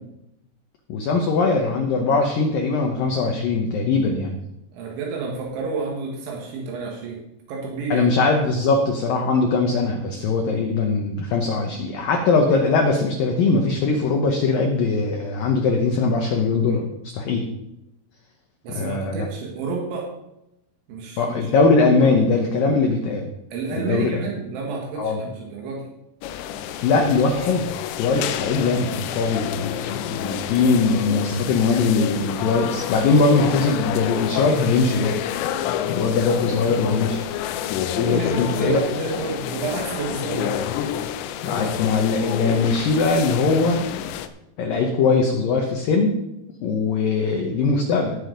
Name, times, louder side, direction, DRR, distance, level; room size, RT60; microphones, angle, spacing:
voice 1, 0.9-4.4 7.9-17.5 18.8-19.3 21.2-23.3 23.8-24.2 25.0-25.2 26.8-27.7 28.0-35.2 35.9-37.2 38.3-38.8 41.4-43.8 44.6-46.2 46.6-48.2, left 4 dB, 70° left, 2 dB, 2.3 m, -21 dB
voice 2, 4.7-7.2 7.5-8.1 18.6-20.1 20.9-21.5 22.0-22.1 23.5-25.9 38.0-40.6, right 4 dB, 80° right, -1 dB, 4.1 m, -30 dB
sound 1, 26.2-44.3, left 10 dB, 85° left, 2.9 m, -28 dB
18.0 x 6.4 x 5.2 m, 0.86 s
omnidirectional pair, 5.2 m